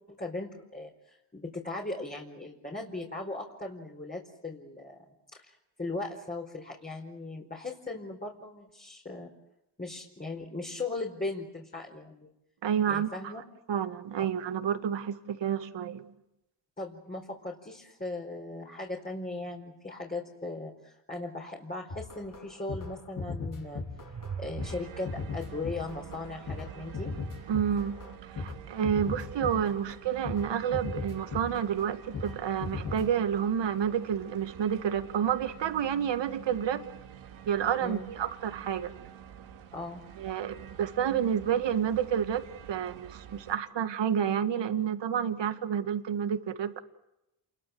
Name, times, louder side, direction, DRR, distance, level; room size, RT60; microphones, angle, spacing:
voice 1, 0.1-5.0 5.3-9.3 9.8-12.3 12.9-13.4 16.8-23.8 24.4-27.1 37.8-38.1 39.7-40.0, left 2 dB, 20° left, -1 dB, 4.6 m, -38 dB
voice 2, 12.6-13.3 13.7-16.1 27.5-36.8 37.5-38.9 40.2-46.8, right 8 dB, 60° right, 9 dB, 2.0 m, -29 dB
sound 1, 21.9-28.6 28.8-29.9 30.2-30.5 30.7-31.8 32.1-32.4 32.6-33.1, left 4 dB, 40° left, 4.3 m, -37 dB
sound 2, 23.3-26.8, right 7 dB, 35° right, 1.2 m, -44 dB
sound 3, 24.6-43.6, right 9 dB, 90° right, 2.6 m, -48 dB
28.5 x 22.5 x 7.9 m, 0.88 s
cardioid pair, 80°, 48 cm